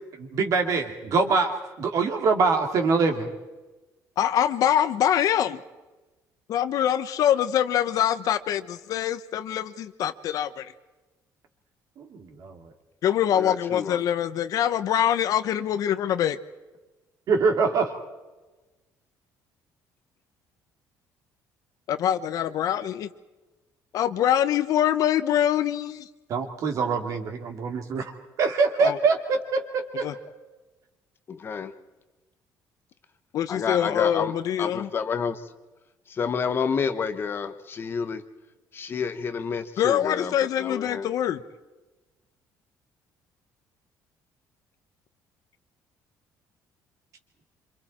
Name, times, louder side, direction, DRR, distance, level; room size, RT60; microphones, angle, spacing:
voice 1, 0.1-3.3 12.0-12.7 17.3-17.9 26.3-28.1 28.4-30.1, right 4 dB, 50° right, 4 dB, 3.0 m, -24 dB
voice 2, 4.2-5.6 6.5-10.7 13.0-16.4 21.9-23.1 23.9-26.1 28.8-29.0 30.0-30.1 33.3-34.9 39.8-41.4, left 10 dB, 55° left, 12 dB, 1.0 m, -24 dB
voice 3, 13.3-14.0 31.3-31.7 33.5-34.3 34.6-35.4 36.1-38.2 38.7-41.1, left 6 dB, 30° left, 10 dB, 1.1 m, -29 dB
27.0 x 26.5 x 4.4 m, 1.2 s
cardioid pair, 155°, 7 cm